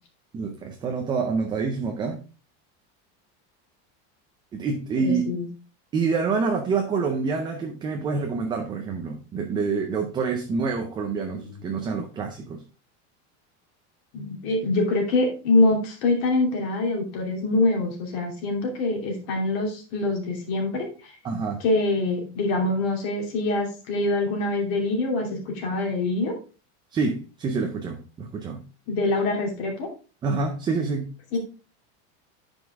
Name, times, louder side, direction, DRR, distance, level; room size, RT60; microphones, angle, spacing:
voice 1, 0.3-2.2 4.5-5.3 5.9-12.6 21.2-21.6 26.9-28.6 30.2-31.1, right 4 dB, 15° right, 3 dB, 0.4 m, -27 dB
voice 2, 5.0-5.5 11.4-11.6 14.1-21.2 21.6-26.3 28.9-29.9 31.3-31.4, left 2 dB, 60° left, 1 dB, 2.8 m, -24 dB
9.2 x 5.3 x 3.5 m, 0.34 s
cardioid pair, 175°, 34 cm